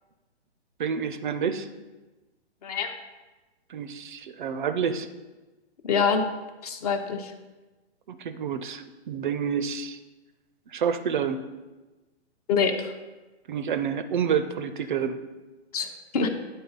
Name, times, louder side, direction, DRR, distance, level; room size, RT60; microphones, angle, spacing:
voice 1, 0.8-1.7 3.7-5.1 8.1-10.0 10.7-11.4 13.5-15.2, right 7 dB, 45° right, 11 dB, 0.4 m, -28 dB
voice 2, 2.6-2.9 5.8-6.2 6.6-7.3 12.5-12.9 15.7-15.9 16.1-16.3, left 5 dB, 35° left, 7 dB, 0.6 m, -25 dB
9.1 x 3.9 x 3.9 m, 1.2 s
hypercardioid pair, 135°, 34 cm